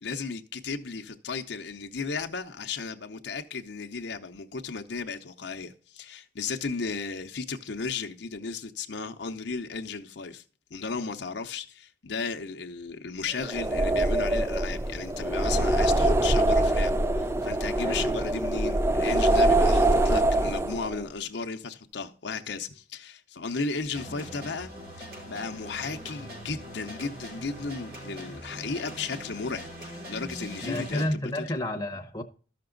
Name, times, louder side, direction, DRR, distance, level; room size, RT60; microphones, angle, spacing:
voice 1, 0.0-10.4 10.7-24.7 25.0-31.6, left 4 dB, 70° left, 0.7 m, -35 dB
sound 1, 13.4-21.0, right 1 dB, 15° right, 0.3 m, -24 dB
sound 2, 23.9-31.1, equal, 55° right, 3.9 m, -42 dB
voice 2, 30.6-32.2, left 1 dB, 20° left, 0.9 m, -30 dB
13.5 x 5.9 x 3.8 m
head